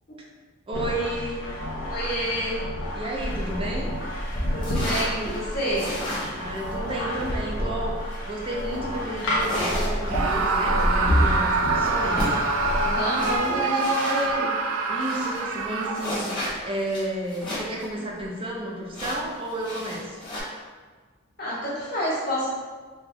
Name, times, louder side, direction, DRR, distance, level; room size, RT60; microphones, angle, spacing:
sound 1, 0.7-13.4, equal, 70° left, 0.8 m, -31 dB
voice 1, 0.7-1.4 2.9-3.9 6.4-12.3 14.9-20.2, right 1 dB, 25° right, -2 dB, 0.5 m, -32 dB
voice 2, 1.9-2.7 4.5-5.9 12.8-14.5 21.4-22.5, equal, 45° left, -8 dB, 1.3 m, -28 dB
sound 2, 3.1-14.3 14.7-14.8 15.0-17.9 18.2-18.3 18.9-20.4, equal, 20° left, 1.1 m, -30 dB
Screaming, 10.1-16.3, right 3 dB, 80° right, 0.3 m, -25 dB
3.3 x 2.3 x 3.4 m, 1.4 s
head